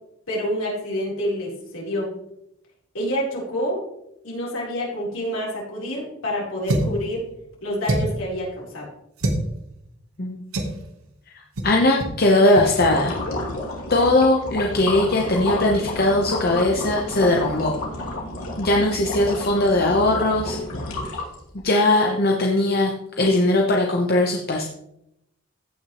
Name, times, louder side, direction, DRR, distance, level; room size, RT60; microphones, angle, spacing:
voice 1, 0.3-2.1 2.9-3.8 4.2-7.2 7.6-8.9, equal, 70° left, -4 dB, 3.8 m, -27 dB
sound 1, 6.7-7.0 7.8-8.3 9.2-9.4 10.5-10.8 11.6-11.7 12.0-12.2 12.5-12.7, right 1 dB, 85° right, 1.4 m, -24 dB
voice 2, 11.6-13.2 13.9-17.7 18.6-20.6 21.6-22.9 23.2-24.6, left 2 dB, 45° left, 0 dB, 0.9 m, -19 dB
sound 2, 12.7-21.6, left 2 dB, 85° left, 2.6 m, -30 dB
16.0 x 6.1 x 3.1 m, 0.82 s
head